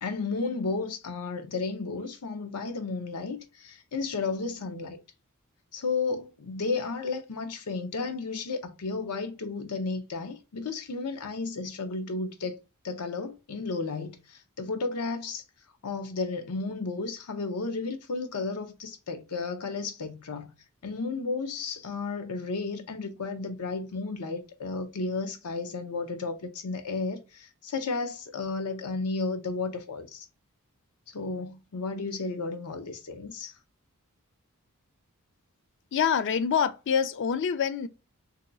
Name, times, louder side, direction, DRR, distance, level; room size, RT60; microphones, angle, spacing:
voice 1, 0.0-5.0 5.7-12.6 12.8-15.4 15.8-20.6 20.8-30.3 31.1-33.5, left 4 dB, 90° left, 0.7 m, -33 dB
voice 2, 35.9-37.9, left 7 dB, 55° left, 0.3 m, -26 dB
2.8 x 2.2 x 3.8 m
head